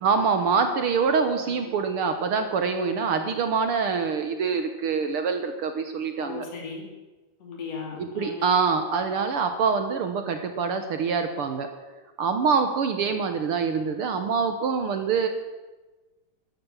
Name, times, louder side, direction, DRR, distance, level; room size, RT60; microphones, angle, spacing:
voice 1, 0.0-6.5 8.0-11.7 12.2-15.3, right 5 dB, 65° right, 7 dB, 1.4 m, -25 dB
voice 2, 6.2-6.9 7.4-8.5 13.0-13.1, left 5 dB, 50° left, 0 dB, 3.9 m, -37 dB
12.5 x 12.0 x 7.3 m, 1.2 s
omnidirectional pair, 3.7 m